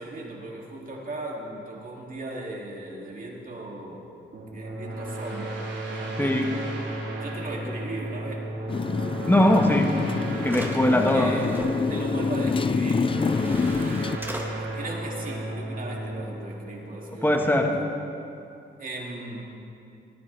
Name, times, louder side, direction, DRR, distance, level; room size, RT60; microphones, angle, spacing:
voice 1, 0.0-4.1 4.5-5.6 5.9-6.8 7.2-8.5 11.1-11.6 11.9-13.7 14.6-17.8 18.8-19.4, right 2 dB, 45° right, -2 dB, 2.8 m, -37 dB
sound 1, 4.3-17.7, right 1 dB, 70° right, 2.9 m, -34 dB
Motorcycle, 8.7-14.2, left 5 dB, 25° left, 0.4 m, -27 dB
voice 2, 9.3-9.9 10.4-11.3 17.1-17.7, left 1 dB, 10° left, 2 dB, 1.6 m, -20 dB
sound 2, 9.9-10.0 10.4-11.7 13.0-13.1 13.4-14.5, right 1 dB, 10° right, 1.9 m, -39 dB
19.5 x 14.0 x 3.5 m, 2.6 s
cardioid pair, 75°, 20 cm